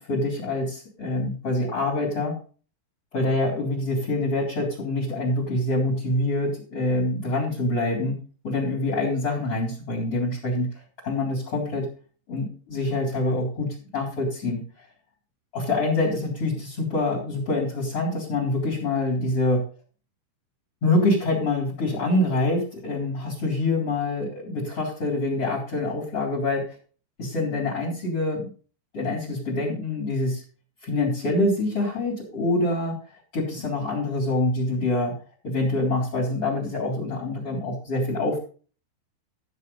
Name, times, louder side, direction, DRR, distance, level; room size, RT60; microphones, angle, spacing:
voice 1, 0.0-2.3 3.1-8.2 8.4-10.7 11.0-11.9 12.3-14.9 15.5-19.6 20.8-26.7 27.2-28.5 28.9-30.4 30.8-32.9 33.3-35.1 35.4-38.4, left 2 dB, 35° left, 0 dB, 4.6 m, -25 dB
13.5 x 7.6 x 5.5 m, 0.39 s
omnidirectional pair, 5.2 m